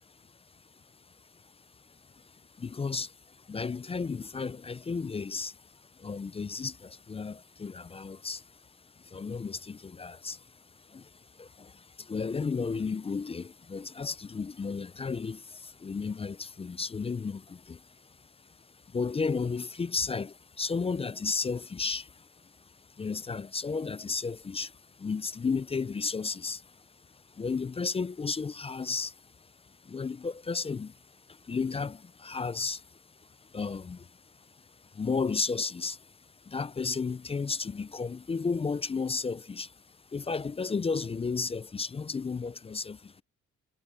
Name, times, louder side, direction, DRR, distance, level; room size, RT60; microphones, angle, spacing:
voice 1, 0.5-43.2, left 4 dB, 20° left, 0.4 m, -34 dB
cardioid pair, 90°, 30 cm